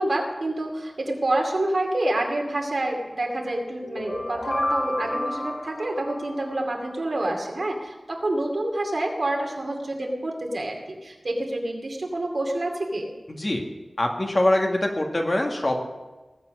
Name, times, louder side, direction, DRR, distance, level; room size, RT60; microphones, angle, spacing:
voice 1, 0.0-13.1, right 1 dB, 65° right, 1 dB, 2.5 m, -27 dB
sound 1, 3.8-6.9, left 1 dB, 75° left, 3.3 m, -31 dB
voice 2, 13.3-13.6 14.0-15.8, left 1 dB, 40° left, 1 dB, 2.0 m, -23 dB
19.5 x 7.6 x 6.3 m, 1.2 s
wide cardioid pair, 75°, 0 cm